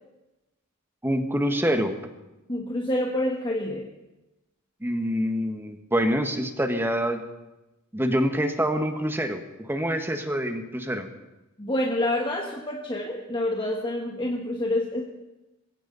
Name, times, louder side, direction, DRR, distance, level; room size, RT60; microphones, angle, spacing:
voice 1, 1.0-2.0 4.8-7.2 7.9-11.1, equal, 10° right, 6 dB, 1.4 m, -26 dB
voice 2, 2.5-3.9 11.6-15.0, left 1 dB, 25° left, -1 dB, 1.5 m, -27 dB
21.5 x 16.5 x 4.1 m, 1.0 s
head